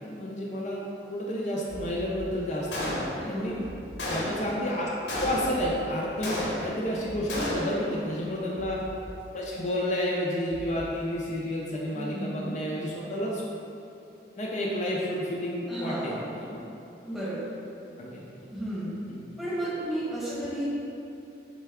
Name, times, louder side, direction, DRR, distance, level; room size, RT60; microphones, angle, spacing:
voice 1, 0.0-3.0 3.3-3.6 4.0-4.9 5.2-8.8 9.3-13.4 14.4-16.7 18.0-18.2 19.1-19.2, left 1 dB, 40° left, -4 dB, 0.4 m, -31 dB
sound 1, 1.5-9.1 9.4-9.7 10.5-10.9, equal, 30° right, 0.6 m, -46 dB
Gunshot gunfire, 2.7-3.4 4.0-4.6 5.1-5.7 6.2-6.9 7.3-7.9, left 1 dB, 85° left, 0.9 m, -32 dB
voice 2, 3.2-3.6 7.3-8.0 11.9-12.5 15.7-16.2 17.1-17.5 18.5-18.9 19.4-20.6, right 1 dB, ahead, -10 dB, 1.0 m, -33 dB
4.4 x 3.3 x 3.4 m, 2.8 s
head